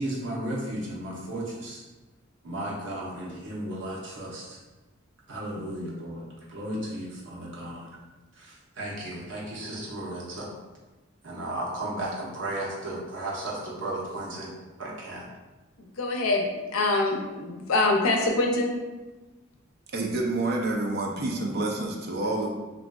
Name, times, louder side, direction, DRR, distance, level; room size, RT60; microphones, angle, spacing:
voice 1, 0.0-1.8 2.4-4.6 5.3-7.9 8.4-10.5 11.2-14.5 14.8-15.3, right 1 dB, 65° right, -5 dB, 0.8 m, -34 dB
voice 2, 16.0-18.7, left 2 dB, 85° left, 1 dB, 0.5 m, -24 dB
voice 3, 19.9-22.5, right 2 dB, 50° right, 0 dB, 0.4 m, -28 dB
3.4 x 2.5 x 2.2 m, 1.2 s
head